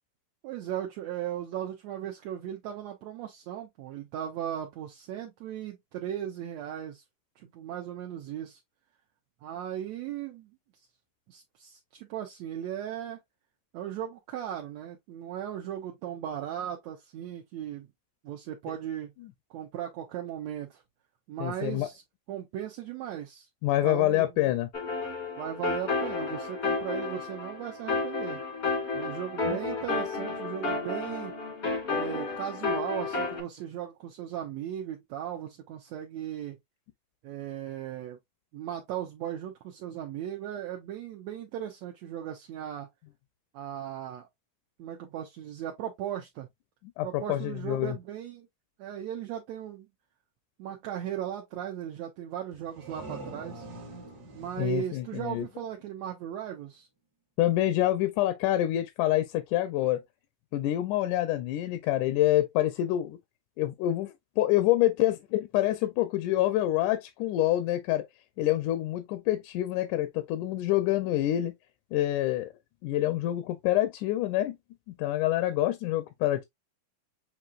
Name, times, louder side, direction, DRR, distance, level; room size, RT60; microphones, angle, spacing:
voice 1, 0.4-7.0 7.4-8.6 9.4-10.6 11.3-13.2 13.7-17.9 18.2-19.1 19.5-20.8 21.3-22.0 22.3-23.5 23.8-24.3 25.4-28.4 28.9-31.3 31.9-36.6 37.2-38.2 38.5-42.9 43.5-44.3 44.8-46.5 47.0-48.5 48.8-49.9 50.6-53.6 54.3-56.9, right 10 dB, 75° right, 1.7 m, -37 dB
voice 2, 21.4-21.9 23.6-24.7 29.4-29.6 47.0-48.0 54.6-55.5 57.4-60.0 60.5-63.2 63.6-68.1 68.4-71.5 71.9-72.5 72.8-74.6 75.0-76.4, left 14 dB, 80° left, 1.9 m, -27 dB
sound 1, 24.7-33.4, left 3 dB, 45° left, 0.8 m, -32 dB
sound 2, 52.5-56.1, right 2 dB, 55° right, 1.0 m, -45 dB
7.5 x 2.8 x 2.3 m
omnidirectional pair, 3.8 m